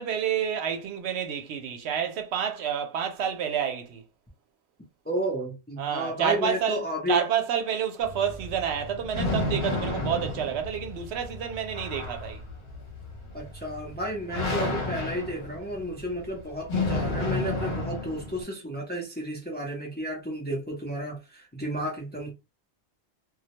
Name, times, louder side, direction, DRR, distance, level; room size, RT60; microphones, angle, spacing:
voice 1, 0.0-4.0 5.8-6.8 7.1-12.4, right 8 dB, 80° right, 0.8 m, -29 dB
voice 2, 5.1-7.2 13.3-22.3, right 1 dB, 10° left, 0.5 m, -32 dB
sound 1, 8.0-18.4, left 2 dB, 70° left, 1.0 m, -32 dB
2.2 x 2.0 x 2.8 m
omnidirectional pair, 1.1 m